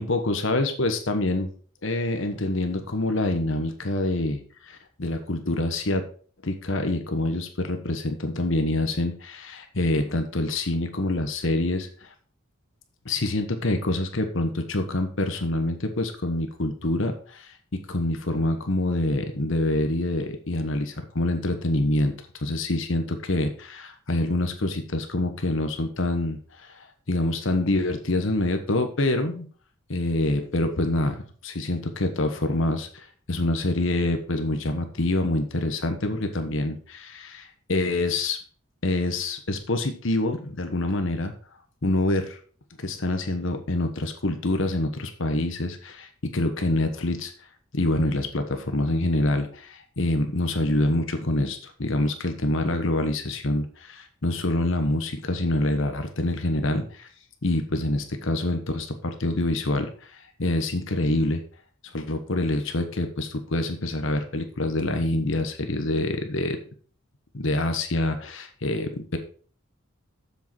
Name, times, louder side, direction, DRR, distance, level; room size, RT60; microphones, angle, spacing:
voice 1, 0.0-1.5 1.8-6.0 6.4-12.1 13.0-17.5 17.9-22.1 22.4-29.4 29.9-38.4 38.8-41.3 41.8-42.4 42.8-47.3 47.7-57.1 57.4-61.4 61.9-66.6 67.3-69.2, left 2 dB, 65° left, 6 dB, 1.2 m, -26 dB
7.6 x 6.9 x 4.4 m, 0.43 s
head